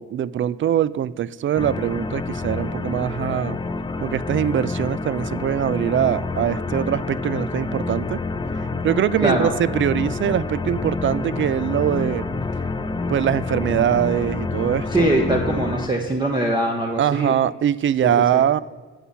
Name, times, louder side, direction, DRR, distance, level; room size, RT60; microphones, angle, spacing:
voice 1, 0.0-3.6 4.0-8.2 8.8-12.2 13.1-15.1 17.0-18.6, right 10 dB, 40° right, 19 dB, 0.4 m, -22 dB
sound 1, 1.6-15.9, left 3 dB, 15° left, 0.5 m, -28 dB
voice 2, 9.2-9.5 14.9-17.3 18.0-18.4, right 1 dB, 15° right, 1 dB, 1.0 m, -22 dB
8.3 x 7.0 x 5.7 m, 1.5 s
cardioid pair, 90°, 30 cm